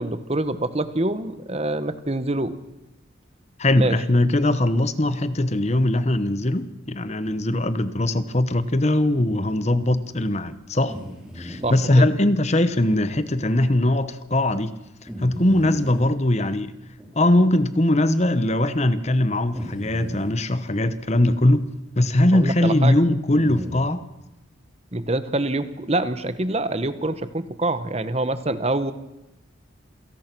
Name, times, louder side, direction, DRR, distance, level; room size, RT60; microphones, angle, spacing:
voice 1, 0.0-2.5 3.8-4.0 11.6-12.1 22.3-22.9 24.9-28.9, right 2 dB, 30° right, 1.1 m, -25 dB
voice 2, 3.6-11.0 11.3-14.7 15.0-16.7 17.1-21.7 22.0-24.0, left 1 dB, 35° left, 1.0 m, -21 dB
sound 1, 10.9-11.7 12.9-13.0 13.6-13.7 15.1-16.1 17.0-17.1 18.2-18.3 19.5-20.3 23.4-23.8, equal, 5° right, 4.1 m, -36 dB
27.5 x 18.0 x 6.1 m
head